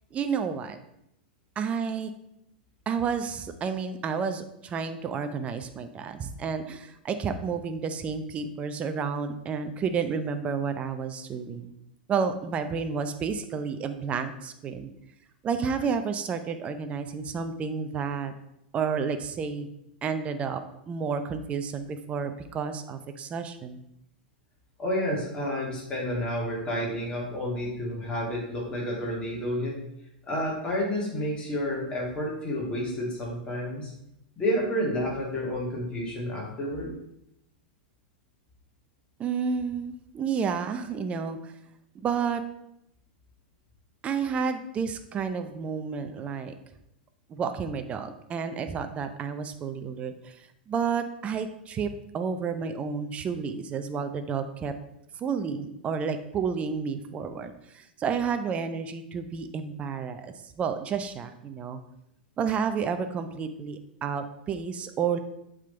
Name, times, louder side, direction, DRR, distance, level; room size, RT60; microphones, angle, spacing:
voice 1, 0.1-0.8 1.6-2.1 2.9-11.7 12.1-14.9 15.4-18.3 18.7-19.7 20.0-20.6 20.9-23.8 39.2-41.5 41.9-42.4 44.0-46.5 47.3-54.7 55.2-61.8 62.4-65.2, right 6 dB, 25° right, 8 dB, 0.5 m, -31 dB
voice 2, 24.8-29.8 30.3-33.9 34.4-36.9, equal, 20° left, -4 dB, 2.4 m, -30 dB
7.4 x 3.7 x 4.3 m, 0.80 s
figure-of-eight pair, 95°, 5 cm